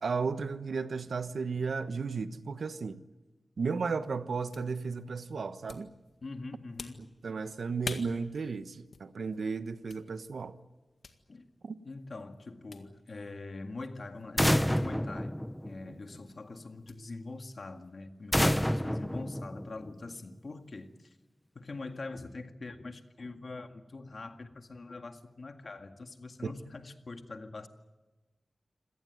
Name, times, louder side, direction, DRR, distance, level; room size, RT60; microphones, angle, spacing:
voice 1, 0.0-3.0 3.6-5.9 7.2-10.5 11.6-11.7 26.4-26.5, right 5 dB, 75° right, 1.1 m, -34 dB
sound 1, 3.7-19.3, left 4 dB, 90° left, 1.8 m, -51 dB
voice 2, 6.2-7.1 11.3-11.4 11.8-15.4 15.6-21.2 21.6-27.7, left 3 dB, 50° left, 2.0 m, -43 dB
sound 2, 14.4-16.2 18.3-20.1, equal, 5° left, 0.8 m, -29 dB
26.5 x 18.0 x 9.4 m
wide cardioid pair, 120°, 0 cm